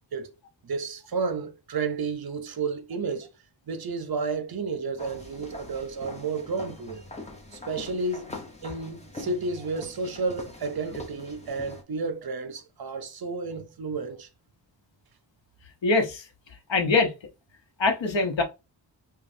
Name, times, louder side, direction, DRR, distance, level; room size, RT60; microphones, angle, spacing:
voice 1, 0.6-3.3 3.7-7.0 7.5-8.4 8.6-14.3, right 4 dB, 55° right, 0.7 m, -31 dB
sound 1, 5.0-11.8, left 2 dB, 15° left, 0.8 m, -43 dB
voice 2, 15.8-16.2 16.7-17.1 17.8-18.4, left 3 dB, 75° left, 1.0 m, -23 dB
5.1 x 2.3 x 2.6 m
wide cardioid pair, 125°, 45 cm